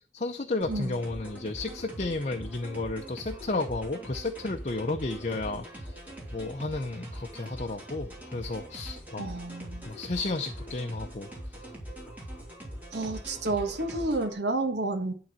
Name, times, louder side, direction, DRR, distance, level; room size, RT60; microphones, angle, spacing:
voice 1, 0.1-5.9 6.3-9.3 9.8-11.3, left 2 dB, 40° left, 0.7 m, -32 dB
sound 1, 0.6-14.3, equal, 10° right, 3.0 m, -42 dB
voice 2, 9.2-9.8 12.9-15.1, right 2 dB, 70° right, 1.4 m, -30 dB
11.5 x 3.9 x 7.5 m
head